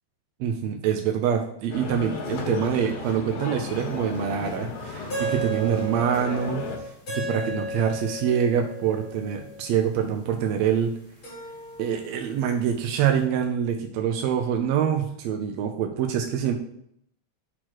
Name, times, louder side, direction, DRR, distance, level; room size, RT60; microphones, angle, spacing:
voice 1, 0.4-6.7 7.1-10.9 11.8-16.5, right 8 dB, 80° right, 3 dB, 1.7 m, -25 dB
sound 1, 1.7-6.8, left 4 dB, 90° left, 2.5 m, -34 dB
sound 2, 3.7-3.8 5.1-10.0 11.2-12.8, right 3 dB, 40° left, 1.7 m, -35 dB
6.2 x 3.1 x 5.8 m, 0.71 s
omnidirectional pair, 3.3 m